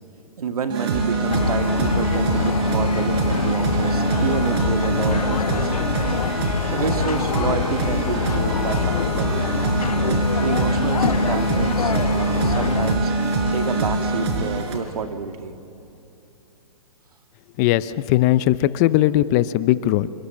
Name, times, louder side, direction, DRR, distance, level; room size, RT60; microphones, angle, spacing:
voice 1, 0.4-6.1 6.7-9.9 10.4-13.1 13.5-15.5, right 5 dB, 75° right, 7 dB, 2.2 m, -29 dB
sound 1, 0.7-14.2, right 2 dB, 25° right, 5.4 m, -26 dB
sound 2, 0.7-14.8, right 4 dB, 45° right, 4.5 m, -27 dB
sound 3, 1.3-13.0, left 7 dB, 75° left, 1.0 m, -26 dB
voice 2, 17.6-20.1, left 15 dB, 30° left, 16 dB, 0.6 m, -19 dB
26.5 x 25.5 x 7.3 m, 2.8 s
hypercardioid pair, 145°, 19 cm